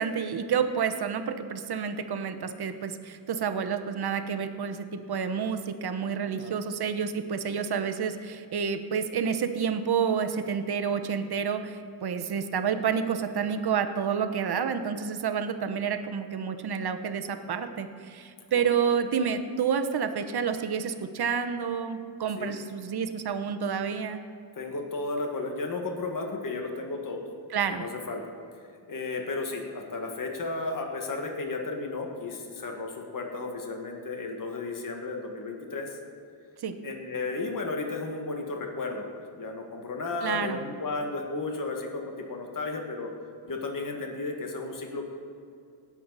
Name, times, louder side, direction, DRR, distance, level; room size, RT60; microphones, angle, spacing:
voice 1, 0.0-24.2 27.5-27.9 36.6-36.8 40.2-40.6, right 7 dB, 55° right, 9 dB, 1.0 m, -29 dB
voice 2, 6.3-6.6 18.5-18.6 22.4-22.6 24.5-27.3 27.7-28.2 28.9-36.0 36.8-43.1 43.5-45.0, left 3 dB, 40° left, 2 dB, 1.7 m, -34 dB
18.5 x 7.9 x 4.1 m, 2.4 s
cardioid pair, 90°, 47 cm